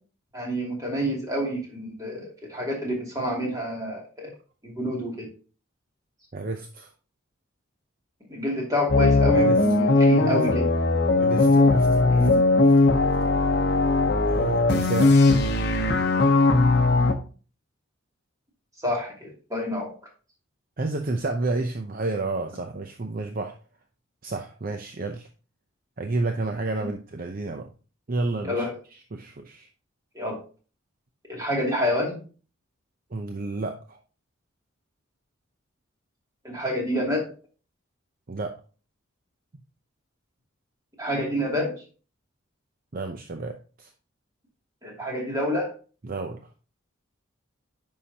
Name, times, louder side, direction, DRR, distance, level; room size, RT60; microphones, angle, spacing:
voice 1, 0.3-4.3 4.6-5.3 8.3-10.7 12.1-12.4 18.8-19.9 26.7-26.9 28.4-28.7 30.1-30.4 31.3-32.2 36.4-37.3 41.0-41.8 44.8-45.7, equal, 15° right, -2 dB, 2.6 m, -28 dB
voice 2, 6.3-6.9 9.3-9.6 10.2-10.4 11.2-12.2 14.3-15.4 20.8-23.6 24.2-25.3 26.0-27.7 28.1-28.7 29.1-29.7 33.1-34.0 38.3-38.5 42.9-43.9 46.0-46.4, right 2 dB, 45° right, 5 dB, 0.6 m, -30 dB
sound 1, 8.9-17.1, left 3 dB, 50° left, 0.8 m, -19 dB
9.7 x 5.6 x 2.8 m, 0.37 s
head